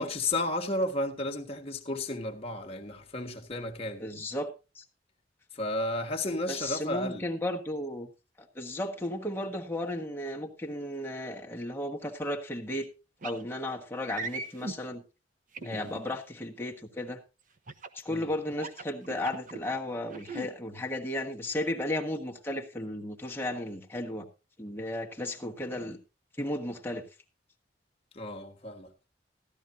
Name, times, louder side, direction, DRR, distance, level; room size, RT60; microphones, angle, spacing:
voice 1, 0.0-4.0 5.5-7.3 15.6-15.9 18.1-18.3 28.1-28.9, left 1 dB, 35° left, 1.5 m, -33 dB
voice 2, 4.0-4.5 4.7-4.8 6.5-8.1 8.4-12.9 13.2-15.0 15.6-17.2 17.9-24.3 24.6-26.0 26.4-27.0, left 1 dB, 15° left, 1.4 m, -34 dB
sound 1, 13.2-13.4 14.1-14.8 15.5-16.2 17.7-18.0 18.5-19.6 20.1-20.5, right 3 dB, 50° right, 0.9 m, -38 dB
15.5 x 12.0 x 2.7 m
head